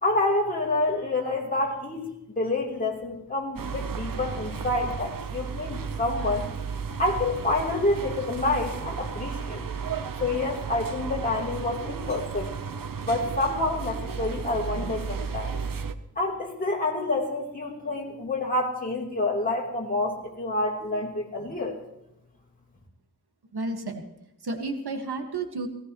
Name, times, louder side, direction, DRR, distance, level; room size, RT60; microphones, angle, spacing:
voice 1, 0.0-2.1 2.4-6.5 7.0-9.6 10.2-12.5 13.1-15.6 16.2-21.7, left 2 dB, 20° left, -3 dB, 3.5 m, -28 dB
sound 1, 3.6-15.9, right 5 dB, 60° right, 0.9 m, -34 dB
voice 2, 23.5-24.0 24.4-25.7, right 3 dB, 80° right, 4 dB, 1.9 m, -31 dB
17.5 x 17.5 x 3.1 m, 0.86 s
wide cardioid pair, 115°, 38 cm